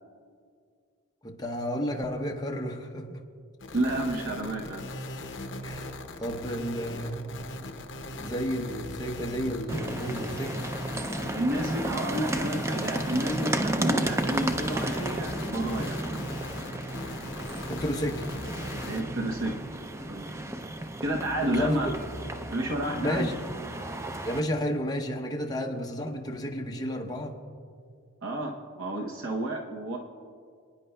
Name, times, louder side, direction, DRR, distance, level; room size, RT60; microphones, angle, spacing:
voice 1, 1.2-3.2 5.6-5.9 6.2-7.2 8.2-10.7 17.7-18.3 21.5-21.8 23.0-23.4 24.2-27.3, equal, 20° left, 2 dB, 0.7 m, -32 dB
sound 1, 3.6-19.0, left 1 dB, 55° left, 0.8 m, -39 dB
voice 2, 3.7-4.9 11.3-16.0 18.9-19.5 20.1-20.4 21.0-21.9 22.5-23.3 28.2-30.0, right 1 dB, 60° right, 0 dB, 0.8 m, -30 dB
sound 2, 9.7-24.4, right 1 dB, 15° right, 0.4 m, -33 dB
24.0 x 9.7 x 2.2 m, 2.2 s
head